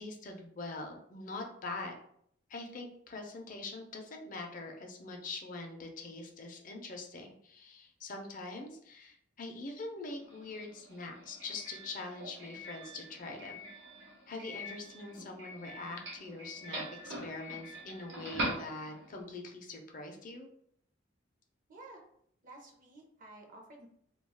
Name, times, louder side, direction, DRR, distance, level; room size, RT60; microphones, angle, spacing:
voice 1, 0.0-2.0 2.5-13.6 14.3-20.5, left 3 dB, 45° left, 3 dB, 0.5 m, -43 dB
Doorbell, 10.2-19.2, right 1 dB, 80° right, 1.0 m, -43 dB
voice 2, 21.7-22.0 22.4-23.9, right 2 dB, 45° right, 2 dB, 0.5 m, -52 dB
2.3 x 2.3 x 3.3 m, 0.67 s
head